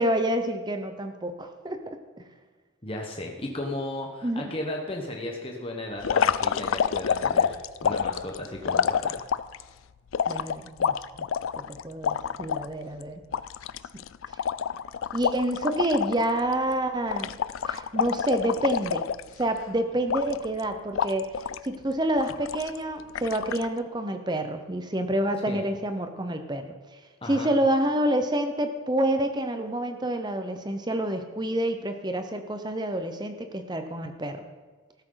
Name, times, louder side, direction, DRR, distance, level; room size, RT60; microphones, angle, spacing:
voice 1, 0.0-2.3 4.2-4.5 10.3-11.3 11.6-13.2 15.1-19.0 19.4-21.3 21.6-34.4, right 1 dB, 20° right, 7 dB, 0.9 m, -28 dB
voice 2, 2.8-9.2 25.5-25.6 27.2-27.5, left 1 dB, 25° left, 1 dB, 1.1 m, -35 dB
sound 1, 6.0-9.6 10.1-12.7 13.0-13.1 13.3-16.3 16.5-16.7 17.1-19.6 20.1-20.6 21.0-21.7 22.2-22.8 23.2-23.7, left 7 dB, 70° left, 0.4 m, -27 dB
14.0 x 13.0 x 4.0 m, 1.3 s
head